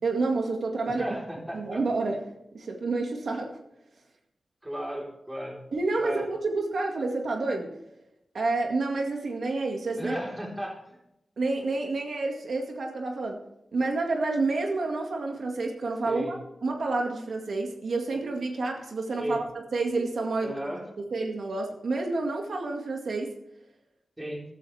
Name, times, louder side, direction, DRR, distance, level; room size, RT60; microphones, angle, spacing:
voice 1, 0.0-1.1 1.5-2.2 2.5-3.5 5.7-7.7 8.3-10.2 11.4-13.4 13.7-19.4 19.7-20.6 21.0-23.3, right 3 dB, 70° right, 2 dB, 2.0 m, -29 dB
voice 2, 0.8-1.8 4.6-5.6 6.0-6.3 9.9-11.0 16.1-16.3 19.2-19.4 20.4-20.9 24.2-24.4, equal, 10° right, -2 dB, 3.9 m, -34 dB
15.0 x 14.0 x 3.4 m, 0.84 s
wide cardioid pair, 140°, 0 cm